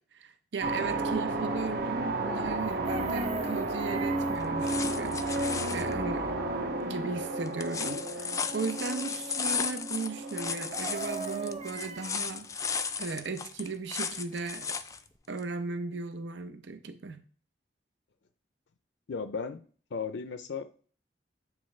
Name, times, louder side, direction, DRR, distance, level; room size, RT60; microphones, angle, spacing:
voice 1, 0.1-6.4 6.8-14.8 15.3-17.2, right 4 dB, 85° right, 9 dB, 0.7 m, -37 dB
sound 1, 0.6-12.1, right 2 dB, 60° right, 0.9 m, -33 dB
Chicken rooster, 2.6-4.4 10.5-12.3 14.5-14.6 14.9-15.2, right 5 dB, 35° right, 0.5 m, -39 dB
sound 2, 4.4-5.9 7.5-15.0 15.4-15.5, left 6 dB, 20° left, 0.3 m, -35 dB
voice 2, 19.1-19.6 19.9-20.6, left 5 dB, 80° left, 11 dB, 0.5 m, -35 dB
8.9 x 3.5 x 3.2 m, 0.42 s
head